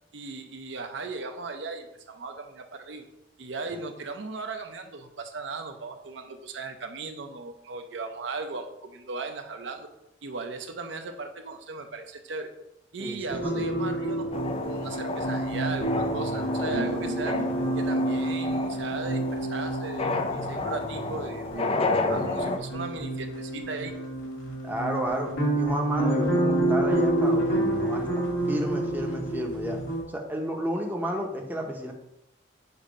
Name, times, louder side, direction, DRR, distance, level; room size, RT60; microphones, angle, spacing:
voice 1, 0.1-3.0 3.4-9.9 10.2-12.5 12.9-17.4 17.8-21.7 22.0-23.9, right 3 dB, 65° right, 5 dB, 0.6 m, -37 dB
voice 2, 13.0-13.7 24.6-29.8 30.1-31.9, right 1 dB, 10° right, 1 dB, 0.7 m, -32 dB
sound 1, 13.3-30.0, right 1 dB, 80° left, 2.1 m, -28 dB
sound 2, 14.3-22.6, left 3 dB, 30° left, 0.4 m, -31 dB
6.8 x 2.7 x 5.1 m, 0.85 s
head